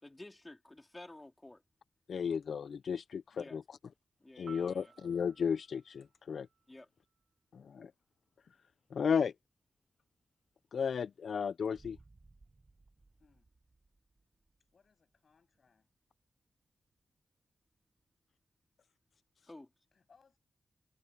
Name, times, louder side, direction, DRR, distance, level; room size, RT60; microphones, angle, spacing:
voice 1, 0.0-1.6 3.4-3.6 4.2-4.9 6.7-6.9 19.5-19.7, left 2 dB, 20° left, 3.2 m, -52 dB
voice 2, 2.1-3.8 4.4-6.5 7.5-7.9 8.9-9.3 10.7-12.0, left 6 dB, 80° left, 0.3 m, -34 dB
Piano, 4.5-7.4 15.5-15.7, right 7 dB, 55° right, 2.5 m, -60 dB
Boom, 11.7-14.7, right 3 dB, 30° right, 1.5 m, -62 dB
voice 3, 14.7-15.9 19.9-20.4, left 5 dB, 55° left, 7.3 m, -68 dB
wide cardioid pair, 130°, 0 cm